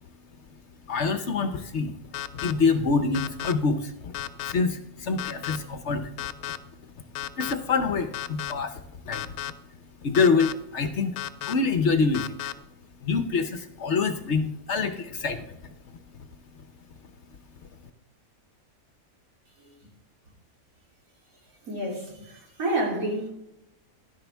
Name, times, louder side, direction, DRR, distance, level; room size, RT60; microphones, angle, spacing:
voice 1, 0.8-9.6 10.0-12.5 13.0-15.6 16.1-16.3 16.5-16.6 17.6-17.7, left 4 dB, 60° left, 9 dB, 0.9 m, -27 dB
sound 1, 2.1-2.5 3.1-3.5 4.1-4.5 5.2-5.6 6.2-6.6 7.1-7.5 8.1-8.5 9.1-9.5 10.1-10.5 11.2-11.5 12.1-12.5, left 12 dB, 85° left, 1.1 m, -33 dB
voice 2, 21.6-23.3, right 1 dB, 70° right, -1 dB, 3.1 m, -29 dB
11.5 x 10.5 x 3.4 m, 0.87 s
omnidirectional pair, 1.5 m